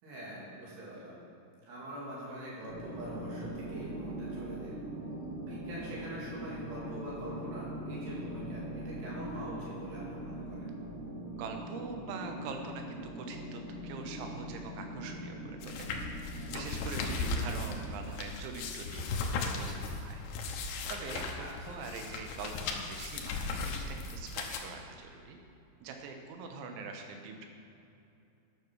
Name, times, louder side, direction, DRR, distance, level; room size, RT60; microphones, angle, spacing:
voice 1, 0.0-1.1 1.7-4.8 5.4-10.7 21.4-21.7, right 1 dB, 65° right, -6 dB, 4.5 m, -44 dB
sound 1, 2.7-18.1, right 1 dB, 25° right, 2.2 m, -42 dB
voice 2, 11.3-15.9 16.5-20.2 20.9-25.4 25.8-27.5, right 4 dB, 85° right, 4 dB, 3.4 m, -43 dB
sound 2, 15.6-24.6, left 3 dB, 80° left, 2.9 m, -37 dB
11.5 x 6.9 x 6.3 m, 2.7 s
omnidirectional pair, 5.3 m